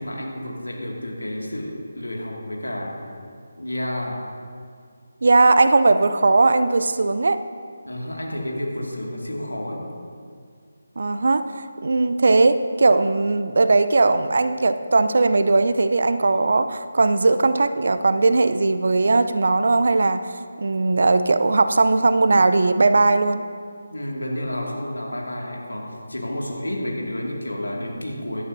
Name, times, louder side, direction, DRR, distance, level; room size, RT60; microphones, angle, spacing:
voice 1, 0.0-3.1 3.6-4.3 7.8-9.9 23.9-28.4, left 1 dB, 85° left, -1 dB, 2.2 m, -30 dB
voice 2, 5.2-7.4 11.0-20.3 20.6-23.4, right 3 dB, 60° right, 11 dB, 0.6 m, -18 dB
16.0 x 11.0 x 2.7 m, 2.2 s
figure-of-eight pair, 155°, 0 cm